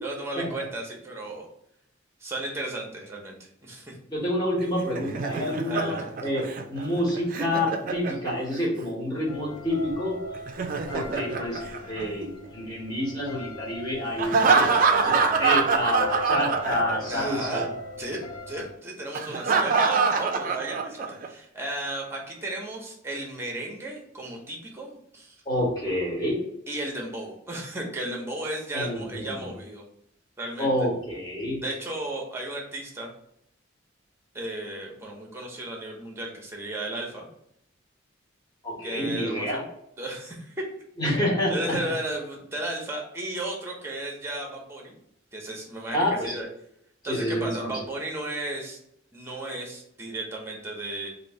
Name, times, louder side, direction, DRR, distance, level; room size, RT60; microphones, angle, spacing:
voice 1, 0.0-1.5 2.2-4.0 5.7-6.0 17.1-17.6 18.0-18.2 18.5-25.4 26.7-29.8 30.4-30.7 31.6-33.1 34.3-37.3 38.8-39.6 40.0-40.6 41.1-41.2 41.5-45.0 45.3-46.5 47.0-48.8 49.1-51.1, right 1 dB, 15° right, 0 dB, 0.8 m, -34 dB
voice 2, 4.1-5.9 6.2-10.2 10.9-11.6 11.9-17.7 25.4-26.4 28.7-29.4 30.6-31.6 38.6-39.6 41.0-41.7 45.9-46.4 47.1-47.7, left 1 dB, 20° left, -5 dB, 1.2 m, -28 dB
Laughter, 4.6-8.7 10.3-12.5 14.2-17.2 17.5-17.7 19.1-21.3, right 4 dB, 45° right, 0.3 m, -25 dB
sound 1, 9.3-18.7, left 3 dB, 85° left, 0.6 m, -40 dB
3.0 x 2.6 x 4.2 m, 0.74 s
head